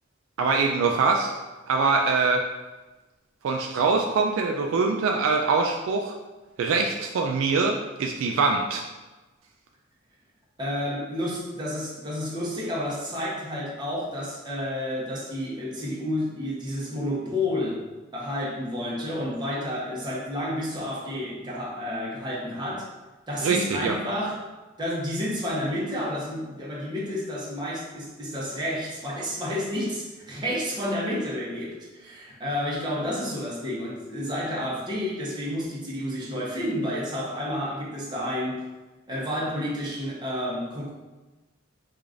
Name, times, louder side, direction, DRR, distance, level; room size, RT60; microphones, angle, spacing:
voice 1, 0.4-1.4 1.7-2.4 3.4-6.1 6.6-8.8 23.4-24.0, right 4 dB, 70° right, 2 dB, 0.3 m, -23 dB
voice 2, 10.6-17.9 18.1-22.9 23.3-24.4 24.8-38.7 39.1-40.9, left 1 dB, 20° right, -6 dB, 0.9 m, -30 dB
4.8 x 2.4 x 2.5 m, 1.2 s
head